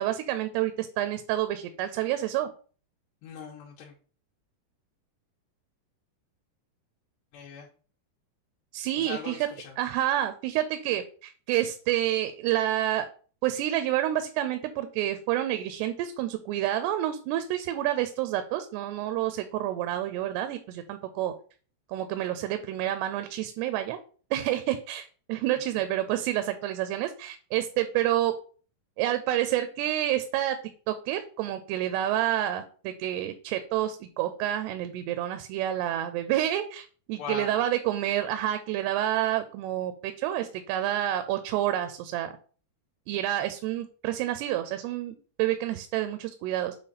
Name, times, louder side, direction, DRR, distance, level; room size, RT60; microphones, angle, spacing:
voice 1, 0.0-2.5 8.7-9.5 9.8-13.1 13.4-21.3 21.9-24.0 24.3-28.3 29.0-30.6 30.9-42.3 43.1-46.8, right 13 dB, 85° right, 10 dB, 2.6 m, -29 dB
voice 2, 3.2-3.9 7.3-7.7 9.0-9.7 37.2-37.6, left 5 dB, 85° left, -2 dB, 3.1 m, -39 dB
7.5 x 3.3 x 4.0 m, 0.40 s
omnidirectional pair, 4.7 m